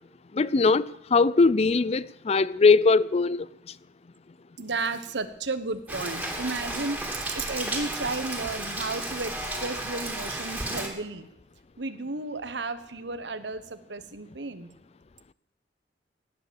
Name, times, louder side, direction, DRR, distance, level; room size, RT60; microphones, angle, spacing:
voice 1, 0.3-3.5, left 4 dB, 35° left, 0.4 m, -21 dB
voice 2, 4.6-11.3 11.8-14.7, right 3 dB, 80° right, 1.3 m, -33 dB
Rain, 5.9-10.9, right 1 dB, 10° right, 3.0 m, -33 dB
17.5 x 10.5 x 7.1 m
head